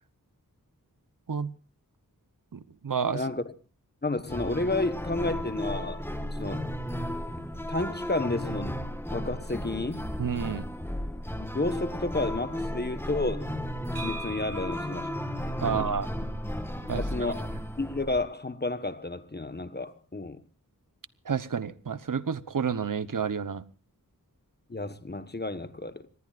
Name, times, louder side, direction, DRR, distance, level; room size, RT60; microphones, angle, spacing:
voice 1, 2.5-3.2 10.2-10.7 15.6-16.1 16.9-17.0 21.2-23.6, right 6 dB, 65° right, 1.0 m, -30 dB
voice 2, 3.1-3.4 4.0-6.7 7.7-8.8 9.1-10.0 11.4-13.5 13.9-15.1 15.6-16.0 16.8-17.5 17.8-20.4 24.7-26.1, left 2 dB, 30° left, 1.4 m, -31 dB
sound 1, 4.3-18.2, equal, 5° left, 2.2 m, -34 dB
sound 2, 14.0-17.7, right 2 dB, 45° right, 4.6 m, -45 dB
25.0 x 20.5 x 2.5 m
wide cardioid pair, 85°, 35 cm